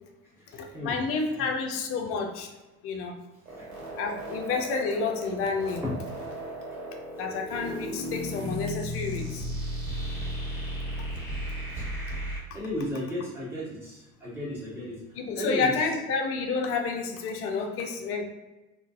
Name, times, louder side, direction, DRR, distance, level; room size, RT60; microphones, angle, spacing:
voice 1, 0.5-2.5 2.8-3.2 3.9-5.9 7.2-9.5 12.5-12.6 15.1-18.2, left 4 dB, 35° left, 4 dB, 0.5 m, -30 dB
sound 1, 3.5-12.4, equal, 90° right, 1.1 m, -35 dB
voice 2, 12.5-14.9 15.3-15.7, left 1 dB, 5° right, -8 dB, 1.4 m, -33 dB
3.8 x 2.2 x 2.6 m, 1.1 s
figure-of-eight pair, 70°, 42 cm